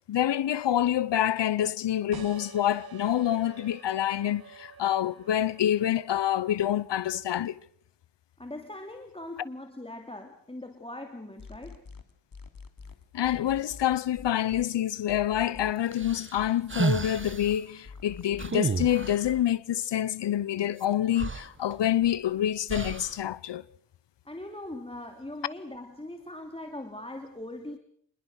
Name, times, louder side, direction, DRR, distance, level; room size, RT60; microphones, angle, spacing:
voice 1, 0.1-7.6 13.1-23.6, left 11 dB, 70° left, 0.9 m, -27 dB
sound 1, 2.1-7.3, right 7 dB, 50° right, 1.6 m, -49 dB
voice 2, 8.4-11.8 24.2-27.8, left 1 dB, 10° left, 2.7 m, -41 dB
sound 2, 11.4-14.6 15.1-19.5, left 4 dB, 50° left, 2.8 m, -45 dB
sound 3, 15.9-17.5 18.4-19.3 20.8-20.9 21.2-22.1 22.7-23.2, right 4 dB, 25° right, 1.2 m, -31 dB
27.0 x 21.5 x 6.4 m
wide cardioid pair, 100°, 45 cm